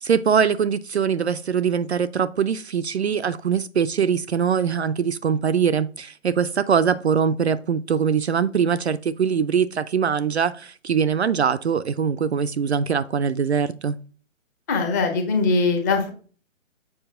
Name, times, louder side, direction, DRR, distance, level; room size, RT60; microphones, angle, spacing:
voice 1, 0.0-13.9, right 7 dB, 55° right, 0.5 m, -22 dB
voice 2, 14.7-16.1, left 4 dB, 15° left, 0.7 m, -21 dB
7.1 x 5.0 x 3.6 m
figure-of-eight pair, 140°, 40 cm